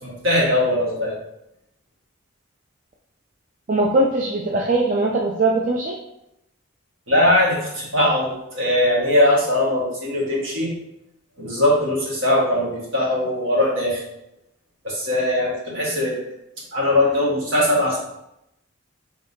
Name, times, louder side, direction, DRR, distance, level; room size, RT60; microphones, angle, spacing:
voice 1, 0.0-1.1 7.1-10.7 11.4-14.0 14.8-16.2 16.7-18.0, left 1 dB, 65° right, -5 dB, 1.6 m, -20 dB
voice 2, 3.7-6.0, right 2 dB, 40° right, -2 dB, 0.4 m, -20 dB
4.9 x 3.4 x 2.7 m, 0.83 s
head